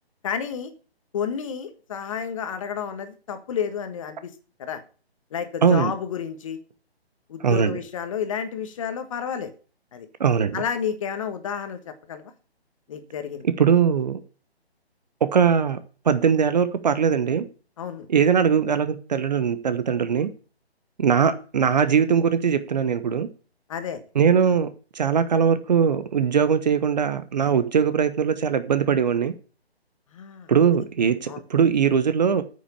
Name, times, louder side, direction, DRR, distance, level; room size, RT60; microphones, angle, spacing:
voice 1, 0.2-0.7 1.1-4.3 4.6-4.8 5.3-6.6 7.3-9.5 9.9-10.1 10.5-11.8 12.1-12.3 12.9-13.4 17.8-18.1 23.7-24.0 30.1-30.5 31.3-31.4, left 7 dB, 30° left, 9 dB, 1.5 m, -30 dB
voice 2, 5.6-5.9 7.4-7.8 10.2-10.6 13.6-14.2 15.3-15.8 16.0-17.5 18.1-20.3 21.0-23.3 24.1-24.7 24.9-29.3 30.5-32.4, right 7 dB, 40° right, 12 dB, 1.1 m, -21 dB
9.2 x 6.4 x 8.3 m, 0.38 s
figure-of-eight pair, 150°, 32 cm